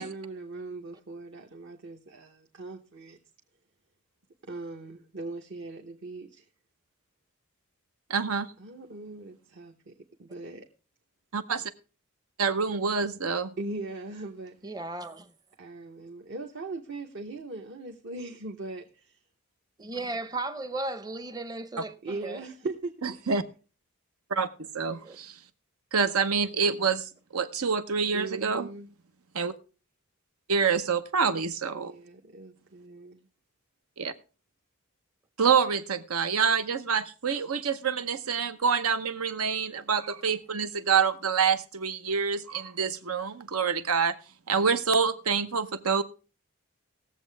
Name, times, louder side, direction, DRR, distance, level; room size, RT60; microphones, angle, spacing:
voice 1, 0.0-3.2 4.4-6.4 8.6-10.7 13.6-14.6 15.6-19.2 22.0-23.2 28.1-28.9 31.7-33.3, right 3 dB, 55° right, 1.0 m, -40 dB
voice 2, 8.1-8.5 11.3-11.7 12.4-13.5 23.0-23.4 24.3-24.5 24.7-25.4 25.9-28.7 29.3-29.5 30.5-31.9 34.0-34.1 35.4-44.2 44.5-46.0, right 6 dB, 85° right, 1.0 m, -27 dB
voice 3, 14.6-15.3 19.8-21.9 22.2-22.4 25.0-25.2, right 2 dB, 20° right, 0.7 m, -35 dB
19.0 x 7.4 x 3.4 m
head